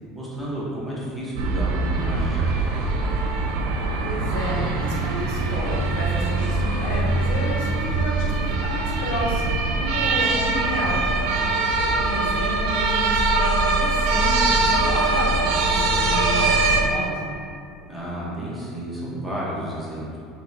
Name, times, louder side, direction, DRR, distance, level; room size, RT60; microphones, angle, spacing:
voice 1, 0.1-2.8 17.9-20.2, equal, 5° right, -8 dB, 0.8 m, -31 dB
sound 1, 1.4-16.8, right 3 dB, 65° right, 0.4 m, -22 dB
voice 2, 4.0-11.0 11.4-17.4, left 1 dB, 85° left, -3 dB, 1.0 m, -31 dB
5.1 x 2.2 x 4.1 m, 2.4 s
cardioid pair, 175°, 0 cm